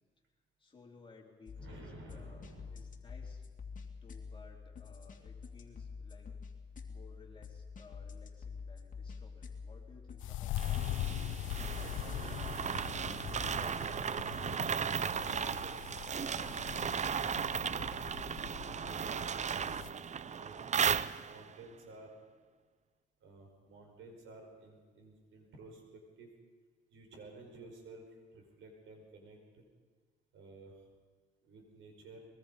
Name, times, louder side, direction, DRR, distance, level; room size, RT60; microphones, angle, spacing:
voice 1, 0.6-3.5 4.0-6.4 6.9-10.8, left 4 dB, 25° left, -1 dB, 4.2 m, -59 dB
sound 1, 1.5-13.7, left 5 dB, 40° left, 2.6 m, -48 dB
voice 2, 1.6-2.8 11.4-12.6 12.9-14.0 14.5-15.8 16.1-17.7 18.3-22.1 23.2-26.3 26.9-29.6 30.3-30.8 31.4-32.3, right 2 dB, 75° right, 3 dB, 5.0 m, -54 dB
sound 2, 10.2-19.9, left 14 dB, 90° left, 0.5 m, -41 dB
sound 3, 10.6-21.6, right 7 dB, 35° right, 0.6 m, -36 dB
23.0 x 21.5 x 5.4 m, 1.4 s
cardioid pair, 90°, 20 cm